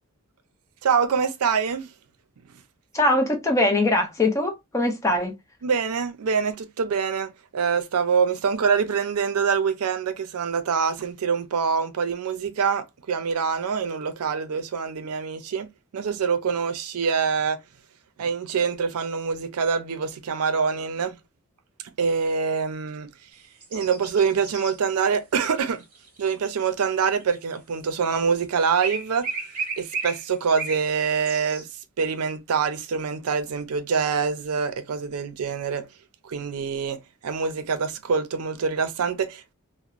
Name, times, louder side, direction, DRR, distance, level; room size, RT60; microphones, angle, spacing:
voice 1, 0.8-1.9 5.6-15.7 15.9-17.6 18.2-21.2 22.0-23.1 23.7-25.8 26.2-29.3 29.8-31.7 32.0-35.9 36.2-39.5, right 6 dB, 85° right, 0.4 m, -25 dB
voice 2, 2.9-5.3, left 2 dB, 15° left, 0.5 m, -22 dB
sound 1, 23.6-24.8 25.6-27.5 28.8-30.9 31.2-31.6, right 4 dB, 40° right, 0.9 m, -33 dB
2.9 x 2.0 x 2.3 m
head